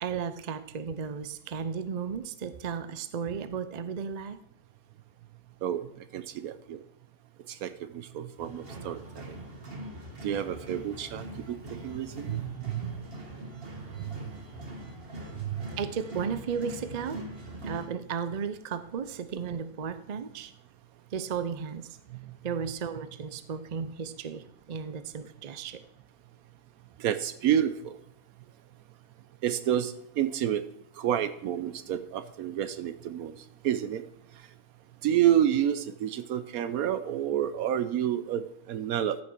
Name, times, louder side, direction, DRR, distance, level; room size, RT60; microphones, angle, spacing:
voice 1, 0.0-4.4 15.8-17.2 17.6-20.5 21.1-22.0 22.4-25.8, right 6 dB, 55° right, 12 dB, 0.4 m, -34 dB
voice 2, 6.1-6.8 7.5-9.4 10.2-13.0 13.6-13.7 14.0-14.2 15.3-15.7 22.1-22.2 27.0-27.9 29.4-30.6 31.0-33.3 33.6-34.0 35.0-39.2, right 10 dB, 75° right, 13 dB, 1.2 m, -29 dB
sound 1, 8.4-17.9, equal, 40° right, 1.8 m, -42 dB
14.0 x 6.2 x 4.6 m, 0.74 s
omnidirectional pair, 1.6 m